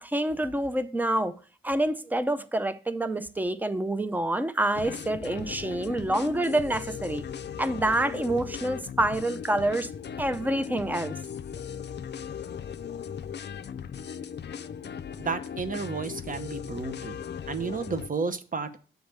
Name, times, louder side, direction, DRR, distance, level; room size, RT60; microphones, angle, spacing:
voice 1, 0.0-1.3 1.6-7.2 7.6-9.9 10.2-11.1, right 1 dB, 10° right, 0.5 m, -27 dB
sound 1, 4.7-18.1, left 8 dB, 55° left, 0.4 m, -38 dB
voice 2, 15.2-17.1 17.5-18.8, right 5 dB, 40° right, 0.9 m, -32 dB
8.0 x 3.4 x 6.5 m
wide cardioid pair, 105°, 21 cm